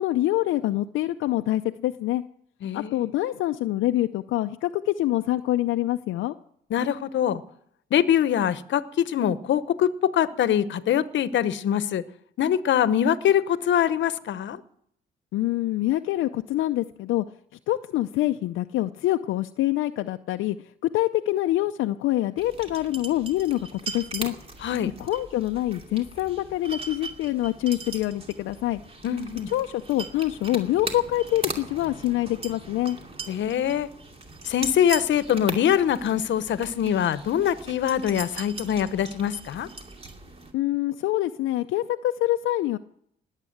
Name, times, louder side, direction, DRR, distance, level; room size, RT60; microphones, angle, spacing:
voice 1, 0.0-2.2 2.7-6.3 15.3-17.2 17.7-20.6 20.9-24.3 25.0-28.8 29.5-33.0 40.5-42.8, left 15 dB, 85° left, 6 dB, 0.6 m, -25 dB
voice 2, 2.6-3.0 6.7-7.4 7.9-12.0 12.4-14.6 24.6-24.9 29.0-29.5 33.3-33.9 34.5-39.7, left 9 dB, 70° left, 15 dB, 1.0 m, -23 dB
sound 1, 22.4-40.5, right 3 dB, 30° right, 2.6 m, -39 dB
19.5 x 8.3 x 7.9 m, 0.68 s
cardioid pair, 90°, 20 cm